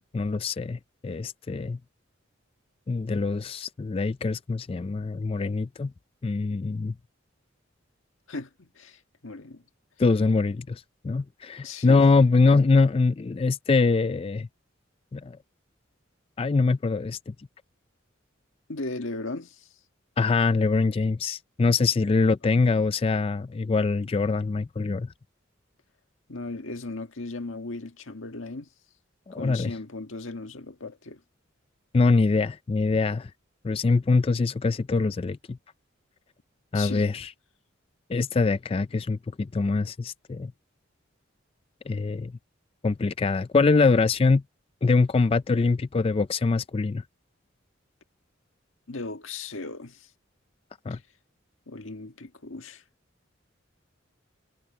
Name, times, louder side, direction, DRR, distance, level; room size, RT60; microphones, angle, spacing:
voice 1, 0.1-1.8 2.9-5.9 6.2-6.9 10.0-14.5 15.1-15.4 16.4-17.3 20.2-25.1 29.3-29.7 31.9-33.3 33.6-35.6 36.7-37.3 38.1-40.5 41.9-42.3 42.8-44.4 44.8-47.0 50.9-51.0, left 3 dB, 30° left, 0.3 m, -23 dB
voice 2, 8.3-9.6 11.6-12.1 18.7-19.7 26.3-28.7 29.3-31.2 36.7-37.1 48.9-50.1 50.9-51.0 51.7-52.8, left 3 dB, 85° left, 1.6 m, -37 dB
head